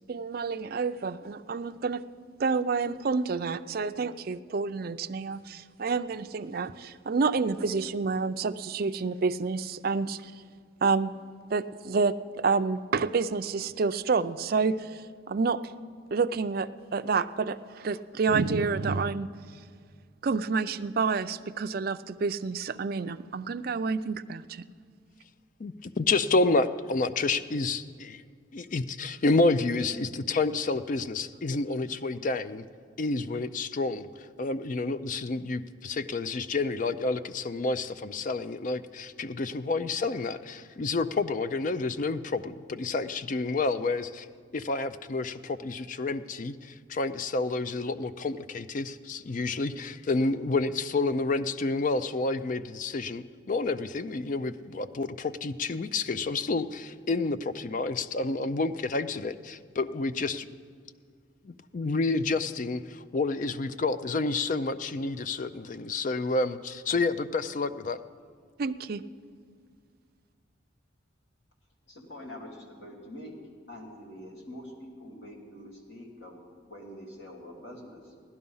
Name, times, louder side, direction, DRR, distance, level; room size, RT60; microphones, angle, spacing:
voice 1, 0.1-2.0 2.4-10.3 10.8-11.1 11.5-15.6 16.1-19.3 20.2-24.6 68.6-69.0, right 4 dB, 50° right, 11 dB, 0.4 m, -29 dB
voice 2, 25.6-28.2 28.5-32.6 33.0-44.3 44.5-60.5 61.4-68.0, left 3 dB, 40° left, 13 dB, 0.4 m, -29 dB
voice 3, 71.9-73.3 73.7-76.4 76.7-78.2, left 1 dB, 65° left, -1 dB, 2.6 m, -45 dB
16.0 x 12.0 x 5.5 m, 2.1 s
head